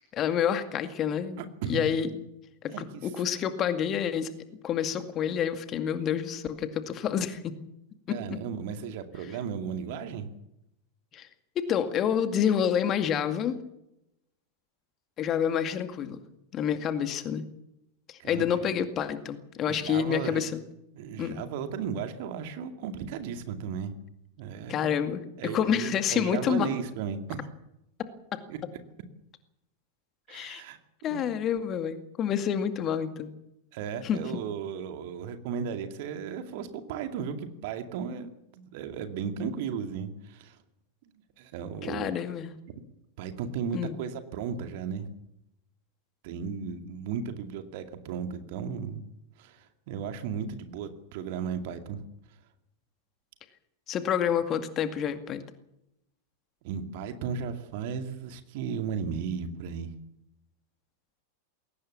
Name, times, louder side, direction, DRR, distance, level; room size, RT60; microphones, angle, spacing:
voice 1, 0.1-2.1 2.6-4.3 4.6-7.6 8.1-8.2 11.1-11.3 11.6-13.5 15.2-16.2 16.5-17.4 18.1-20.6 21.2-21.4 24.7-26.7 28.3-28.4 30.3-30.6 31.0-33.3 34.0-34.4 41.8-42.6 43.7-43.9 53.9-55.4, left 8 dB, 30° left, 9 dB, 2.1 m, -28 dB
voice 2, 2.7-3.0 8.1-10.3 18.2-18.6 19.7-20.4 20.9-23.9 24.4-24.9 25.4-27.5 28.5-28.6 30.3-30.8 31.1-31.3 33.7-40.6 41.4-42.2 43.2-45.1 46.2-49.0 49.4-52.1 56.6-59.9, right 7 dB, 50° right, 7 dB, 2.3 m, -35 dB
21.5 x 18.0 x 7.2 m, 0.84 s
figure-of-eight pair, 90°, 0 cm